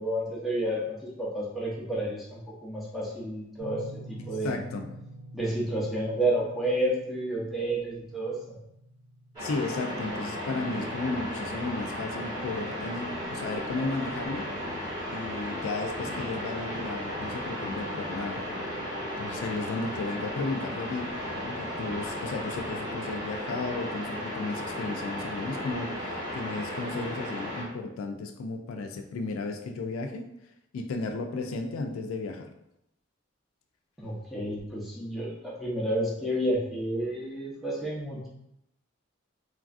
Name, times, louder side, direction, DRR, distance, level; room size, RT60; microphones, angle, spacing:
voice 1, 0.0-4.6 5.3-8.6 34.0-38.3, right 1 dB, ahead, -6 dB, 0.6 m, -30 dB
sound 1, 3.6-12.3, right 2 dB, 40° right, 1.1 m, -48 dB
voice 2, 4.4-4.9 9.4-14.5 15.1-18.4 19.2-21.2 21.4-30.3 30.7-32.5, left 3 dB, 85° left, 5 dB, 0.3 m, -34 dB
sound 2, 9.3-27.6, left 1 dB, 20° right, 1.0 m, -35 dB
3.2 x 2.4 x 2.4 m, 0.81 s
head